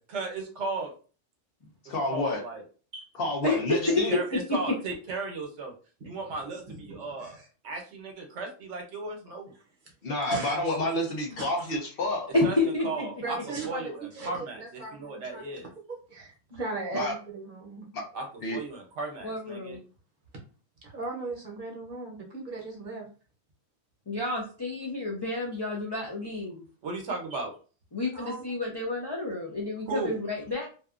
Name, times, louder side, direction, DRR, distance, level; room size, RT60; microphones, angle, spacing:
voice 1, 0.1-0.9 1.9-2.6 3.8-5.7 6.0-7.4 7.6-9.5 12.4-13.4 13.7-15.7 18.1-18.2 18.5-19.8 26.8-27.5 29.9-30.1, right 3 dB, 75° right, 2 dB, 1.0 m, -35 dB
voice 2, 1.9-2.4 3.2-4.1 10.0-12.3 16.9-17.1 17.9-18.0 18.4-18.6, left 1 dB, 60° left, 0 dB, 0.9 m, -29 dB
voice 3, 3.4-4.2 12.3-13.1 19.2-19.8 24.1-26.6 27.9-30.7, left 2 dB, 45° left, -2 dB, 0.3 m, -29 dB
voice 4, 6.5-7.5 10.2-10.7 11.3-11.8 13.2-15.4 15.9-17.9 20.8-23.1 28.1-28.7, right 3 dB, 50° right, -1 dB, 0.8 m, -38 dB
2.7 x 2.2 x 2.4 m, 0.37 s
omnidirectional pair, 1.2 m